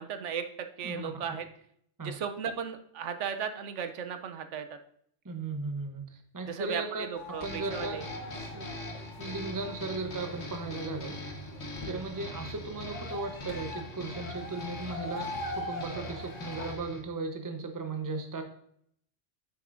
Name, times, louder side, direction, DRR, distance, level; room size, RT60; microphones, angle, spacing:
voice 1, 0.0-1.5 2.0-4.8 6.5-8.0, right 7 dB, 75° right, 8 dB, 1.0 m, -36 dB
voice 2, 5.2-6.0 6.3-7.1 7.4-8.0 8.5-8.7 9.2-11.2 11.8-18.4, right 3 dB, 20° right, 5 dB, 0.7 m, -36 dB
sound 1, 7.1-16.7, left 2 dB, 90° left, 1.4 m, -43 dB
sound 2, 7.4-17.0, left 1 dB, 65° left, 1.5 m, -42 dB
9.3 x 6.6 x 2.6 m, 0.66 s
omnidirectional pair, 1.2 m